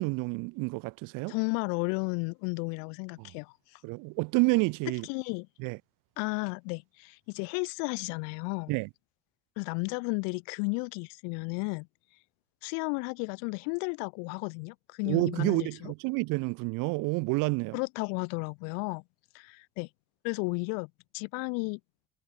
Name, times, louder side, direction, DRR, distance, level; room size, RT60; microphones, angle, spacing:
voice 1, 0.0-1.3 3.2-3.3 3.8-5.1 5.6-5.8 8.7-8.9 15.1-17.8, right 27 dB, 75° right, 1.7 m, -29 dB
voice 2, 1.3-3.5 5.1-5.5 6.2-8.7 9.6-11.9 12.6-15.9 17.7-19.0 19.3-19.9 20.2-21.8, left 40 dB or more, 80° left, 4.6 m, -33 dB
hypercardioid pair, 50°, 32 cm